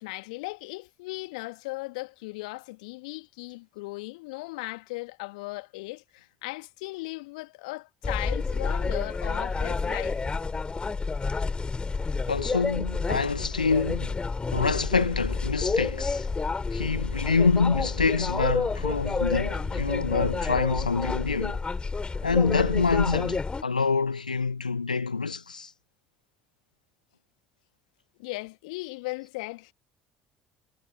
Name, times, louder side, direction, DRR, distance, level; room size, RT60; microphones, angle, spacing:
voice 1, 0.0-10.2 28.2-29.7, left 24 dB, 65° left, 2.0 m, -37 dB
sound 1, 8.0-23.6, left 4 dB, 25° left, 5.2 m, -29 dB
voice 2, 12.3-14.2 14.5-16.3 16.7-21.6 22.2-25.7, left 4 dB, 85° left, 1.1 m, -26 dB
figure-of-eight pair, 55°, 4 cm